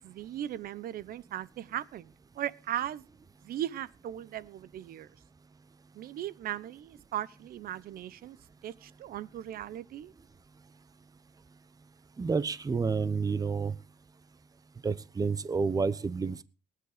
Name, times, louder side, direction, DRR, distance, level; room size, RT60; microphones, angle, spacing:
voice 1, 0.0-3.0 3.4-5.1 5.9-8.4 8.6-10.1, right 11 dB, 60° right, 0.9 m, -38 dB
voice 2, 12.2-13.7 14.8-16.4, right 5 dB, 20° right, 0.9 m, -29 dB
19.5 x 9.9 x 5.0 m
cardioid pair, 110°, 17 cm